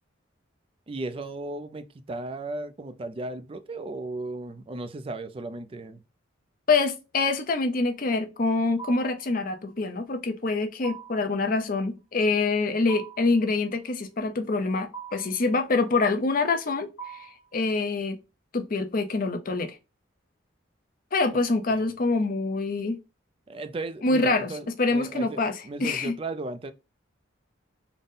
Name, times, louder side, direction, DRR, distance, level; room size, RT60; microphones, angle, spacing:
voice 1, 0.9-6.0 21.8-21.9 23.5-26.7, right 2 dB, 25° right, 0.3 m, -36 dB
voice 2, 6.7-17.3 17.5-18.2 18.5-19.8 21.1-23.0 24.0-26.1, left 3 dB, 40° left, 0.5 m, -25 dB
sound 1, 8.8-9.3 10.8-11.3 12.9-13.4 14.9-15.4 17.0-17.5, right 7 dB, 75° left, 0.8 m, -41 dB
3.9 x 2.1 x 3.6 m
head